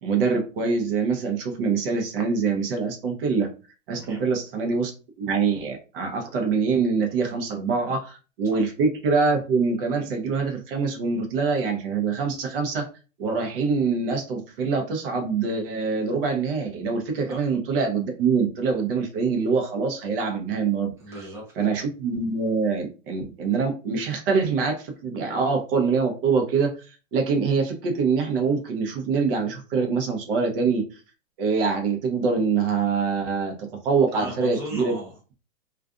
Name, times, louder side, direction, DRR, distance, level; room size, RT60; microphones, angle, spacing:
voice 1, 0.0-3.5 3.9-4.9 5.2-12.8 13.2-20.9 21.6-26.7 27.1-30.8 31.4-33.5 33.8-34.9, right 5 dB, 45° right, 3 dB, 0.7 m, -24 dB
voice 2, 21.0-21.5 34.1-35.4, equal, 5° right, -3 dB, 0.6 m, -38 dB
2.5 x 2.4 x 2.3 m, 0.34 s
hypercardioid pair, 130°, 38 cm